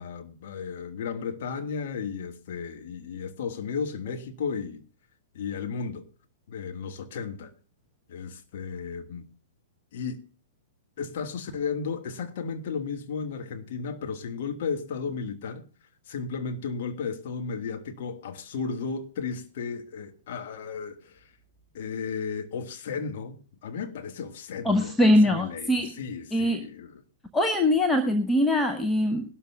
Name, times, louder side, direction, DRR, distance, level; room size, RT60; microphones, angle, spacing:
voice 1, 0.0-4.8 5.3-6.1 6.5-7.5 8.1-9.3 9.9-10.3 11.0-15.6 16.1-21.3 21.7-25.7 26.0-27.0, left 5 dB, 45° left, 1.6 m, -34 dB
voice 2, 24.6-25.9 26.3-26.7 27.3-29.3, left 1 dB, 10° left, 0.9 m, -22 dB
21.0 x 12.5 x 2.3 m
figure-of-eight pair, 110°, 0 cm